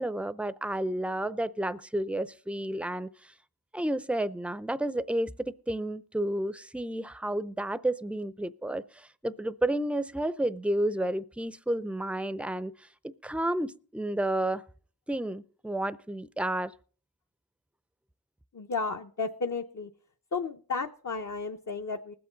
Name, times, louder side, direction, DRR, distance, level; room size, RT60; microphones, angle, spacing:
voice 1, 0.0-3.3 3.7-12.9 13.2-14.6 15.1-16.7, right 1 dB, 5° right, 0.5 m, -31 dB
voice 2, 18.5-19.9 20.3-22.1, left 4 dB, 50° left, 0.8 m, -33 dB
20.0 x 7.7 x 3.9 m
wide cardioid pair, 45°, 37 cm